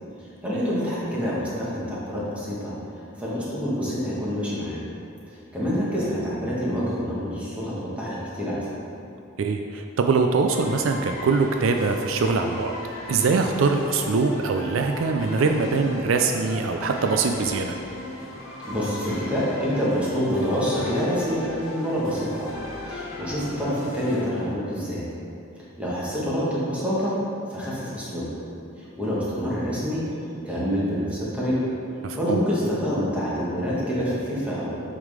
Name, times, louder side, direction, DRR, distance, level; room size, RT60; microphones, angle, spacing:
voice 1, 0.4-4.8 5.3-8.7 18.7-22.5 22.9-25.0 25.8-28.3 28.8-30.1 30.4-31.6 32.1-34.8, equal, 5° right, -8 dB, 1.6 m, -27 dB
voice 2, 9.4-12.7 13.1-17.7 32.0-32.4, right 4 dB, 70° right, 4 dB, 0.4 m, -23 dB
sound 1, 10.5-24.2, left 2 dB, 75° left, 1.4 m, -37 dB
7.8 x 3.8 x 4.9 m, 2.7 s
head